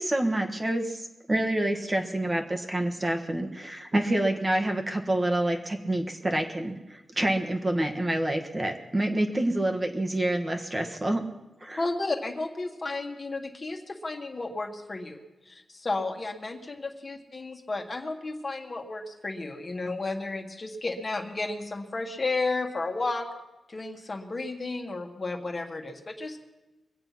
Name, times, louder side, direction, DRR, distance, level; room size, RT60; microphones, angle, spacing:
voice 1, 0.0-11.2 11.6-11.8, right 1 dB, 25° right, 4 dB, 1.5 m, -27 dB
voice 2, 11.8-15.2 15.5-23.3 23.7-26.4, left 3 dB, 40° left, 2 dB, 1.8 m, -33 dB
22.5 x 7.9 x 5.9 m, 1.1 s
cardioid pair, 75°, 0 cm